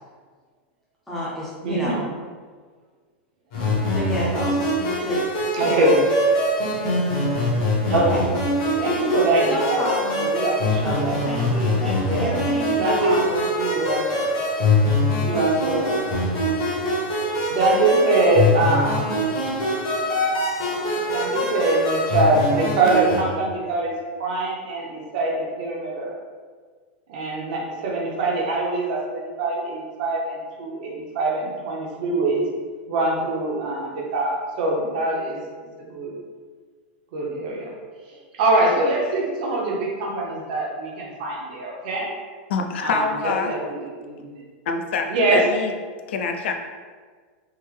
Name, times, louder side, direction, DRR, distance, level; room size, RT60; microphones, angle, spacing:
voice 1, 1.1-2.0 3.9-5.2 5.6-5.9 7.9-8.3 9.4-10.2 10.8-13.5 14.1-14.2 14.6-14.7, equal, 5° left, -8 dB, 0.6 m, -29 dB
voice 2, 1.6-2.0 5.5-6.0 7.9-8.2 8.8-9.8 10.2-11.2 12.0-12.4 12.8-13.2 13.6-14.3 15.2-16.3 17.5-19.1 21.1-26.1 27.1-32.5 32.9-35.4 35.8-36.1 37.1-37.7 38.3-42.1 42.8-44.4 45.1-45.5, right 2 dB, 45° right, -2 dB, 0.7 m, -23 dB
sound 1, 3.5-23.2, left 1 dB, 45° left, 1.0 m, -23 dB
voice 3, 42.5-43.5 44.7-45.7 46.1-46.5, left 5 dB, 90° left, 4 dB, 0.4 m, -25 dB
3.4 x 2.1 x 3.2 m, 1.6 s
supercardioid pair, 180°, 6 cm